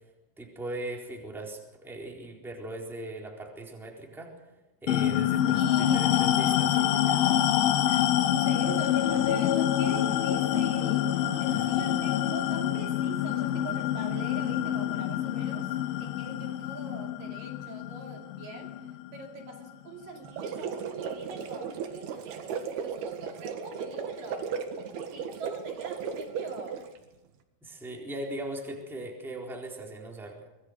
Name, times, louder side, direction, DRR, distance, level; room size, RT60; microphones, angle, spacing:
voice 1, 0.4-4.3 4.8-6.8 11.5-11.8 27.6-30.5, right 1 dB, ahead, 0 dB, 3.4 m, -39 dB
sound 1, 4.9-19.7, left 11 dB, 70° left, 2.7 m, -26 dB
voice 2, 5.5-6.3 6.7-7.5 7.9-8.1 8.4-18.7 19.1-24.5 25.1-26.8, right 3 dB, 60° right, 2 dB, 4.0 m, -43 dB
sound 2, 20.2-27.0, right 6 dB, 75° right, 3.6 m, -36 dB
25.0 x 20.0 x 6.6 m, 1.0 s
omnidirectional pair, 4.6 m